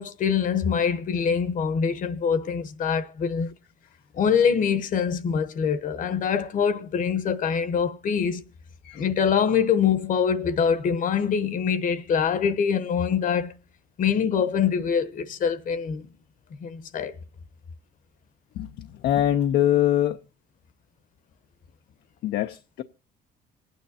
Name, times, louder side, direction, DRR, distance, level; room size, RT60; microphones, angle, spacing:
voice 1, 0.0-3.5 4.1-8.4 8.9-13.5 14.0-16.1 16.6-17.1, left 7 dB, 50° left, 0.9 m, -24 dB
voice 2, 18.6-20.2 22.2-22.8, left 12 dB, 70° left, 0.6 m, -23 dB
26.5 x 9.3 x 2.7 m
cardioid pair, 110°, 17 cm